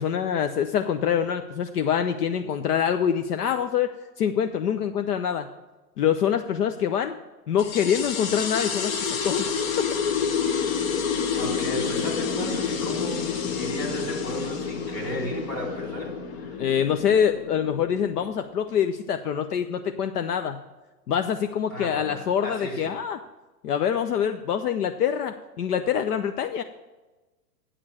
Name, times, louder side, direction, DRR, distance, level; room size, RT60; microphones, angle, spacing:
voice 1, 0.0-5.5 6.0-7.2 7.5-9.5 16.6-20.6 21.1-23.2 23.6-26.6, left 8 dB, 70° left, 8 dB, 0.8 m, -25 dB
sound 1, 7.6-18.6, left 6 dB, 55° left, 1.3 m, -29 dB
voice 2, 11.3-13.2 13.5-16.6 21.7-23.0, equal, 85° left, 1 dB, 4.0 m, -34 dB
8.8 x 6.8 x 6.3 m, 1.2 s
hypercardioid pair, 135°, 48 cm